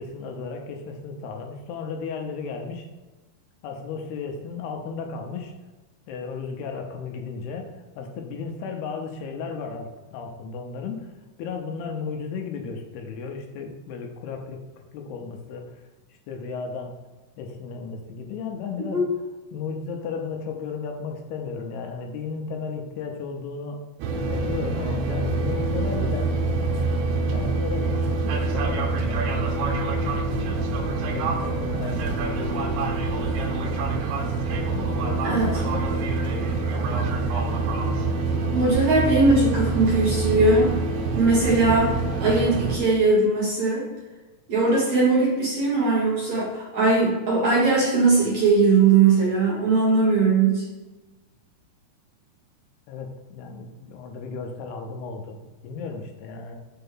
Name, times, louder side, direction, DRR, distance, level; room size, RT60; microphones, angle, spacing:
voice 1, 0.0-2.9 3.6-5.5 6.1-11.1 11.4-15.8 16.3-17.0 17.4-19.1 19.5-23.9 24.3-26.4 27.3-34.1 34.7-38.3 52.9-56.6, left 5 dB, 80° left, 3 dB, 2.8 m, -35 dB
voice 2, 18.8-19.1 35.2-35.6 38.5-40.7 41.2-43.9 44.5-50.6, right 3 dB, 55° right, -5 dB, 2.1 m, -20 dB
sound 1, 24.0-42.8, right 3 dB, 85° right, 2.9 m, -26 dB
6.8 x 4.5 x 5.5 m, 1.2 s
omnidirectional pair, 4.7 m